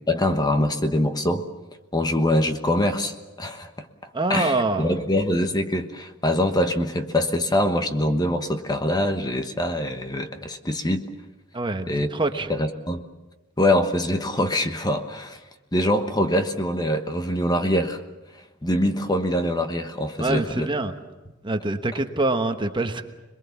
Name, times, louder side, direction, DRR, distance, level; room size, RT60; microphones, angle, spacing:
voice 1, 0.1-1.4 1.9-3.9 4.3-11.1 11.9-12.1 12.5-13.0 13.6-15.4 15.7-18.0 18.6-20.7, left 1 dB, 20° left, 7 dB, 1.2 m, -24 dB
voice 2, 4.1-4.9 11.5-12.5 20.2-20.9 21.4-23.0, right 2 dB, 25° right, 7 dB, 1.2 m, -25 dB
27.0 x 21.5 x 7.1 m, 1.1 s
head